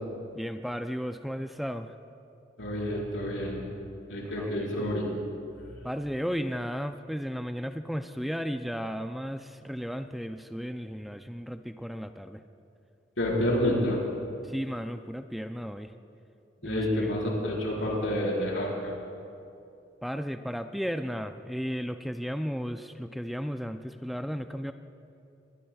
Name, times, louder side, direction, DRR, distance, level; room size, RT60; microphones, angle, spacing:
voice 1, 0.3-2.0 4.4-4.9 5.8-12.4 14.4-15.9 16.6-17.1 20.0-24.7, equal, ahead, 8 dB, 0.3 m, -34 dB
voice 2, 2.6-3.6 4.1-5.0 13.2-14.0 16.6-18.9, left 1 dB, 85° left, -3 dB, 4.6 m, -28 dB
22.0 x 21.0 x 2.3 m, 2.6 s
head